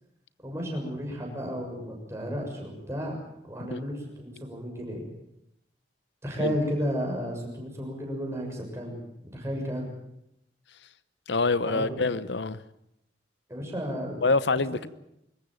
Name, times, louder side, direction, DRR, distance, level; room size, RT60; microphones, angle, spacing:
voice 1, 0.4-3.1 3.5-5.0 6.2-9.9 11.6-12.0 13.5-14.2, equal, 15° right, -1 dB, 6.7 m, -33 dB
voice 2, 11.3-12.6 14.2-14.9, left 3 dB, 90° left, 16 dB, 0.9 m, -25 dB
25.0 x 14.5 x 9.1 m, 0.80 s
head